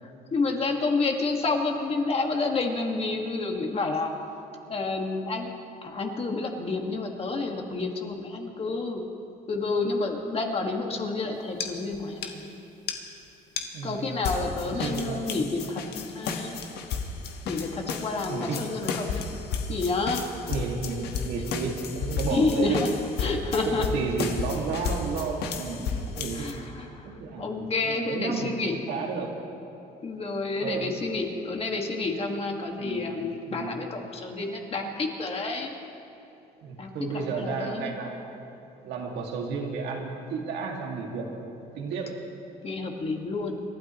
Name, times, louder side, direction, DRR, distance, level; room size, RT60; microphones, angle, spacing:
voice 1, 0.3-4.1 4.7-5.5 5.8-9.0 9.5-12.5 13.8-16.6 17.5-19.2 19.7-20.2 22.3-22.9 23.2-23.9 26.3-27.1 27.4-28.8 30.0-35.7 36.8-36.9 37.3-37.9 42.6-43.6, left 3 dB, 35° left, 2 dB, 1.8 m, -29 dB
sound 1, 11.6-11.7 11.9-12.0 12.2-12.3 12.9-13.0 13.6-13.7 14.2-26.5, left 5 dB, 75° left, 1.5 m, -33 dB
voice 2, 13.7-14.1 14.6-15.3 18.3-18.7 20.5-22.8 23.6-26.5 27.0-29.3 30.6-30.9 32.7-33.0 33.5-33.8 36.6-38.2 38.8-41.3 41.6-42.2, right 4 dB, 85° right, 0 dB, 2.2 m, -32 dB
28.0 x 12.5 x 3.1 m, 2.9 s
cardioid pair, 110°, 17 cm